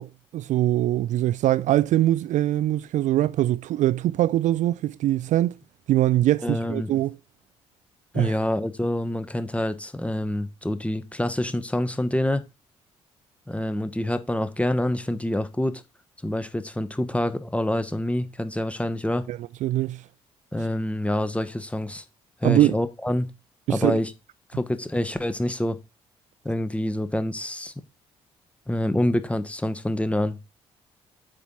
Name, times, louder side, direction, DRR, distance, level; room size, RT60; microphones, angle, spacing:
voice 1, 0.0-5.5 5.9-7.2 8.1-8.3 19.3-20.0 22.4-22.8 23.7-24.0, right 14 dB, 55° right, 0.4 m, -22 dB
voice 2, 6.4-6.9 8.1-12.4 13.5-15.8 16.2-19.3 20.5-22.0 22.4-23.3 23.7-24.1 24.5-25.8 26.4-27.7 28.7-30.5, left 1 dB, 10° left, 1.2 m, -26 dB
8.4 x 4.3 x 5.4 m
hypercardioid pair, 45°, 15 cm